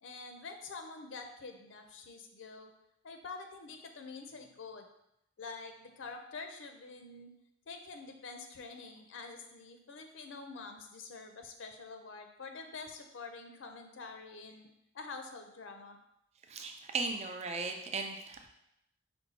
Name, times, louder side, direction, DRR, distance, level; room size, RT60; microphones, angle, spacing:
voice 1, 0.0-2.7 3.0-4.9 5.4-7.3 7.7-14.7 14.9-16.0, left 4 dB, 90° left, 5 dB, 0.5 m, -47 dB
voice 2, 16.5-18.5, right 4 dB, 35° right, 4 dB, 0.4 m, -37 dB
5.3 x 2.2 x 4.1 m, 0.82 s
head